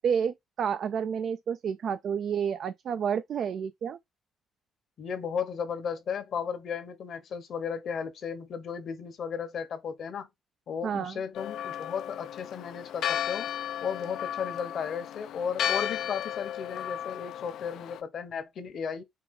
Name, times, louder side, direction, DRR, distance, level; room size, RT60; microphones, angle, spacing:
voice 1, 0.0-4.0 10.8-11.2, right 7 dB, 65° right, 0.3 m, -30 dB
voice 2, 5.0-10.3 10.7-13.5 13.8-19.0, left 7 dB, 60° left, 1.0 m, -35 dB
Church bell, 11.3-18.0, left 10 dB, 80° left, 0.4 m, -34 dB
4.8 x 2.3 x 3.7 m
cardioid pair, 90°, 0 cm